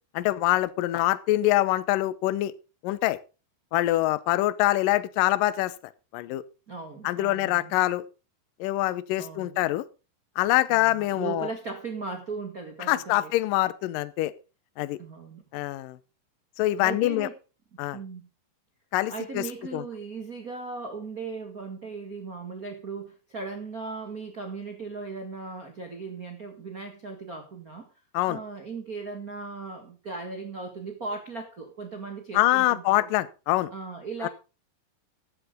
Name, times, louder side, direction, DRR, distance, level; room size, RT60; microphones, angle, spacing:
voice 1, 0.1-2.5 2.8-3.2 3.7-5.7 6.1-6.4 7.0-8.0 8.6-9.8 10.4-11.5 12.9-14.3 14.8-15.0 15.5-16.0 16.6-17.3 17.8-18.0 18.9-19.4 19.7-19.8 28.1-28.4 32.3-33.7 34.2-34.3, left 16 dB, 75° left, 15 dB, 2.0 m, -24 dB
voice 2, 6.7-7.7 9.2-9.6 10.7-13.3 15.0-15.4 16.8-17.4 17.9-18.3 19.1-27.9 28.3-33.1 33.7-34.3, right 4 dB, 65° right, 5 dB, 0.8 m, -37 dB
15.0 x 11.0 x 3.7 m, 0.31 s
omnidirectional pair, 4.9 m